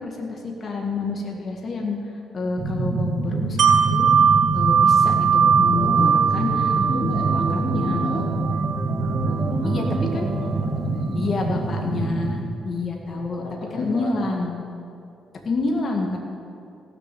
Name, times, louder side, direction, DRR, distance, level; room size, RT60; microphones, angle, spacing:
voice 1, 0.0-2.0 2.3-4.1 4.5-6.5 7.3-8.1 9.6-9.8 10.1-10.3 11.1-13.4 13.7-14.5 15.5-16.2, left 3 dB, 45° left, 1 dB, 1.9 m, -28 dB
sound 1, 2.6-12.4, right 3 dB, 40° right, 2.9 m, -26 dB
Wind chime, 3.6-9.4 9.8-9.9, right 7 dB, 65° right, 2.0 m, -20 dB
sound 2, 5.7-12.1, right 2 dB, 15° right, 1.1 m, -33 dB
voice 2, 5.8-8.5 9.0-11.7 13.1-14.2, left 2 dB, 80° left, -2 dB, 2.7 m, -36 dB
17.0 x 6.7 x 7.7 m, 2.5 s
cardioid pair, 90°, 0 cm